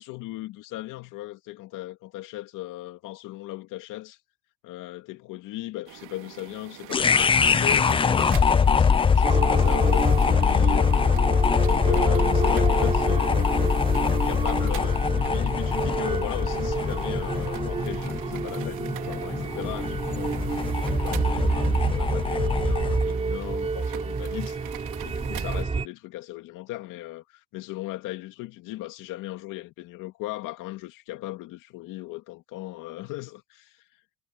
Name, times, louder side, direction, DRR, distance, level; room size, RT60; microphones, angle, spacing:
voice 1, 0.0-4.2 4.6-11.1 11.6-13.7 14.1-33.9, left 17 dB, 55° left, 2.3 m, -38 dB
sound 1, 5.9-25.6, right 16 dB, 55° right, 3.0 m, -43 dB
sound 2, 6.9-23.1, left 6 dB, 15° left, 0.6 m, -23 dB
sound 3, 9.2-25.9, right 4 dB, 15° right, 4.1 m, -29 dB
supercardioid pair, 130°, 38 cm